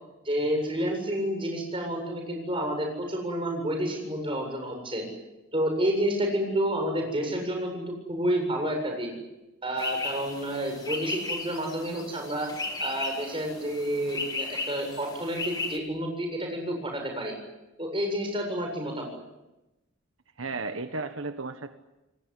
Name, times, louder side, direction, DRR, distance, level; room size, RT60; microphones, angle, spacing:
voice 1, 0.2-5.1 5.5-9.1 9.6-12.5 12.8-17.3 17.8-19.1, equal, 25° right, 3 dB, 7.7 m, -29 dB
sound 1, 9.8-15.8, left 3 dB, 20° left, 2.7 m, -35 dB
voice 2, 20.4-21.7, right 3 dB, 80° right, 8 dB, 1.4 m, -34 dB
28.5 x 19.0 x 9.9 m, 1.0 s
head